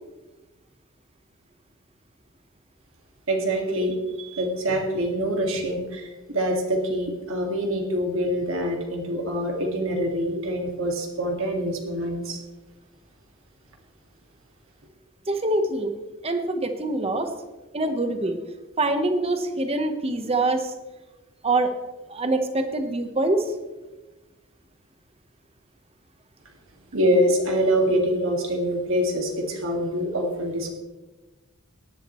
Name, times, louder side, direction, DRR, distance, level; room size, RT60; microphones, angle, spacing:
voice 1, 3.3-4.0 4.4-12.4 26.9-30.7, equal, 65° right, 1 dB, 2.0 m, -25 dB
voice 2, 15.3-15.9 16.2-17.3 17.7-18.4 18.8-20.7 21.4-21.7 22.1-23.5, right 2 dB, 25° right, 7 dB, 1.1 m, -24 dB
18.0 x 11.0 x 3.1 m, 1.2 s
head